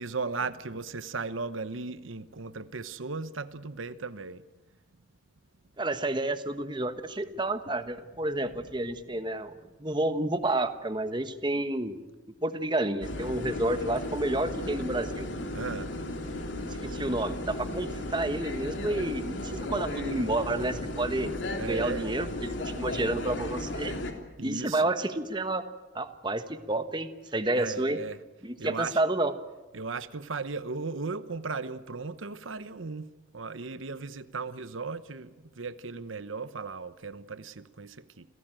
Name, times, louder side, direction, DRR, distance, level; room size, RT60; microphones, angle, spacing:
voice 1, 0.0-4.4 15.5-15.9 21.6-22.1 24.4-24.8 27.5-28.2 28.6-29.0 29.7-38.3, right 4 dB, 90° right, 1.0 m, -36 dB
voice 2, 5.8-9.5 9.8-12.0 12.4-15.3 16.8-21.3 21.6-24.0 24.4-25.6 25.9-28.0 28.4-29.3, right 2 dB, 25° right, 1.3 m, -30 dB
sound 1, 13.0-24.1, left 1 dB, 70° left, 3.2 m, -35 dB
28.5 x 17.0 x 9.0 m
head